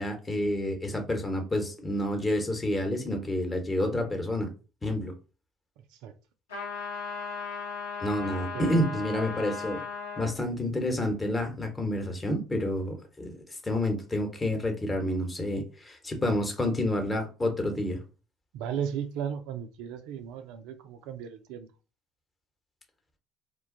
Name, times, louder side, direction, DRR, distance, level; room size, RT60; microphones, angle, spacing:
voice 1, 0.0-4.5 4.8-5.1 8.0-9.8 10.2-13.4 13.6-18.0, left 1 dB, 25° left, 1.0 m, -29 dB
sound 1, 6.5-10.3, left 5 dB, 85° left, 1.0 m, -36 dB
voice 2, 8.5-9.0 18.5-21.7, right 8 dB, 70° right, 0.3 m, -35 dB
2.5 x 2.2 x 3.7 m
hypercardioid pair, 60°, 0 cm